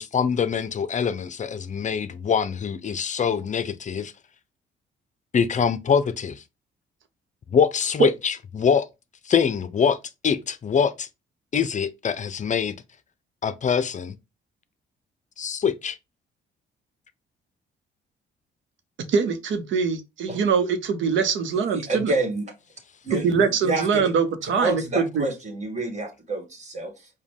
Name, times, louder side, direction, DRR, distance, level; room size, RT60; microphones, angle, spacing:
voice 1, 0.0-4.1 5.3-6.4 7.5-8.9 9.3-10.0 10.2-11.1 11.5-12.8 13.4-14.2 15.4-16.0, left 7 dB, 40° left, 0.5 m, -24 dB
voice 2, 19.1-22.1 23.1-25.3, right 6 dB, 75° right, 0.9 m, -23 dB
voice 3, 21.7-22.4 23.0-24.1 24.4-27.1, right 2 dB, 35° right, 1.8 m, -28 dB
5.0 x 2.2 x 3.6 m
cardioid pair, 90°, 20 cm